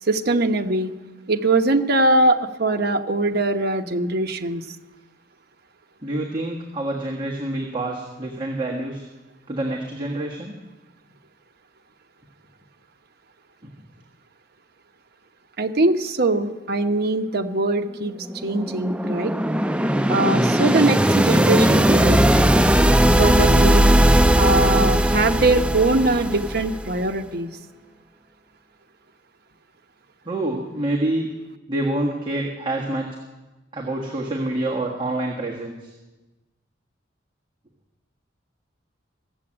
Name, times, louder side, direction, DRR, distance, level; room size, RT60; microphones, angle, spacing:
voice 1, 0.0-0.9 1.3-4.6 15.6-18.1 18.4-19.3 20.1-22.2 23.2-24.0 24.4-27.5, right 2 dB, 60° right, 5 dB, 1.0 m, -21 dB
voice 2, 6.0-9.1 9.5-10.6 13.6-13.7 30.2-31.3 31.7-33.1 33.7-35.9, right 1 dB, 25° right, -3 dB, 1.6 m, -27 dB
sound 1, 18.2-27.1, right 1 dB, 5° right, 0.4 m, -18 dB
15.5 x 7.8 x 8.7 m, 1.2 s
head